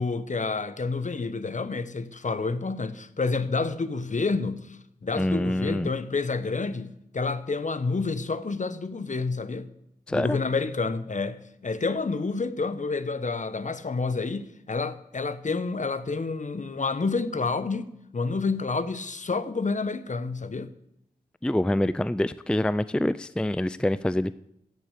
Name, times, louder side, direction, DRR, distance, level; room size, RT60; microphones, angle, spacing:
voice 1, 0.0-9.7 10.1-20.7, left 4 dB, 50° left, 1.0 m, -29 dB
voice 2, 5.1-5.9 10.1-10.4 21.4-24.3, left 1 dB, 5° left, 0.4 m, -26 dB
15.0 x 6.2 x 8.3 m
cardioid pair, 45°, 16 cm